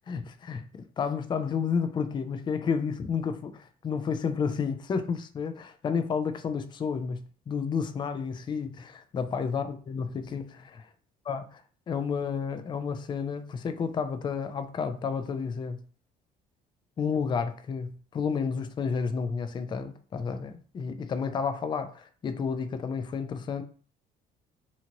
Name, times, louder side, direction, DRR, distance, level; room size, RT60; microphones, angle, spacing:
voice 1, 0.1-10.9 11.3-11.4 11.9-15.8 17.0-23.6, left 6 dB, 30° left, 0.3 m, -31 dB
2.7 x 2.5 x 2.9 m
cardioid pair, 110°, 17 cm